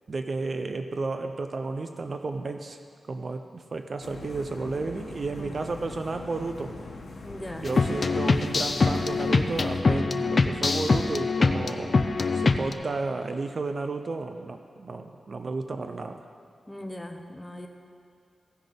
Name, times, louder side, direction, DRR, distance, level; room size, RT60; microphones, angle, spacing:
voice 1, 0.1-2.8 3.1-6.7 7.5-12.0 12.3-16.2, right 3 dB, 40° right, 7 dB, 0.5 m, -32 dB
sound 1, 4.0-9.8, left 3 dB, 85° left, 1.1 m, -41 dB
voice 2, 7.2-7.7 16.7-17.7, left 1 dB, 10° left, 4 dB, 0.7 m, -39 dB
sound 2, 7.7-12.7, left 4 dB, 40° left, 0.4 m, -24 dB
16.0 x 6.2 x 5.1 m, 2.4 s
wide cardioid pair, 175°, 0 cm